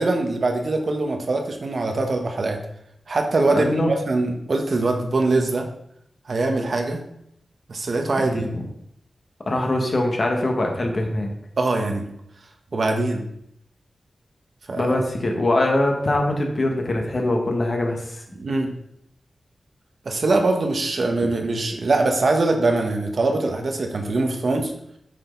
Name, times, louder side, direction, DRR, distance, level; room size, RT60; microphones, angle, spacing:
voice 1, 0.0-2.6 3.1-5.7 6.3-7.0 7.7-8.5 11.6-12.0 12.7-13.2 14.7-14.8 18.4-18.7 20.0-24.7, right 2 dB, 60° right, 4 dB, 1.3 m, -22 dB
voice 2, 3.5-3.9 8.2-8.7 9.5-11.3 14.8-18.2, left 1 dB, 45° left, 2 dB, 1.7 m, -23 dB
8.7 x 6.5 x 4.0 m, 0.74 s
wide cardioid pair, 110°, 0 cm